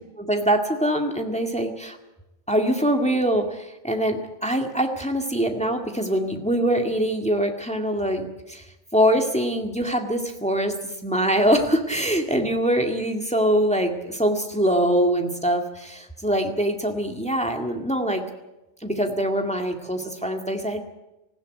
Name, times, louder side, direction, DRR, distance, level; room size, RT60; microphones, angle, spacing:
voice 1, 0.2-2.0 2.5-8.6 8.9-18.2 18.8-20.8, equal, 5° left, 3 dB, 1.9 m, -23 dB
19.0 x 16.0 x 9.1 m, 0.96 s
omnidirectional pair, 1.2 m